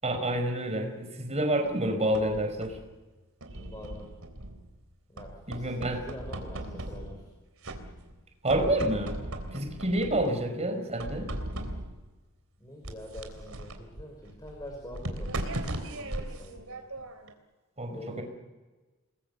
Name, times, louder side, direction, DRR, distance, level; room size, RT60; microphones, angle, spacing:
voice 1, 0.0-2.8 5.5-6.0 8.4-9.1 9.5-11.3 17.8-18.2, right 1 dB, 30° right, 5 dB, 5.1 m, -28 dB
sound 1, 1.7-2.9 3.4-4.8 5.2-7.3 7.6-8.2 8.5-10.4 11.0-12.1 12.8-17.3, right 1 dB, 90° right, 3.6 m, -38 dB
voice 2, 3.6-4.1 5.1-7.3 12.6-16.8 17.9-18.2, left 1 dB, 20° left, 1 dB, 6.0 m, -45 dB
29.5 x 21.5 x 7.0 m, 1.2 s
head